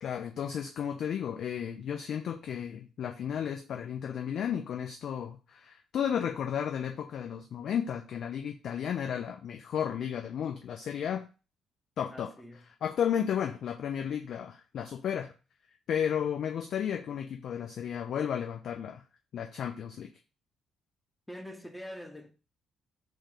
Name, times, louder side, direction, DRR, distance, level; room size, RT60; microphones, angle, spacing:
voice 1, 0.0-11.2 12.0-12.3 12.8-15.3 15.9-19.0 19.3-20.1, left 8 dB, 55° left, 0.4 m, -33 dB
voice 2, 12.1-12.6 21.3-22.3, equal, 5° left, 0.8 m, -44 dB
4.3 x 2.4 x 4.7 m
figure-of-eight pair, 45°, 0 cm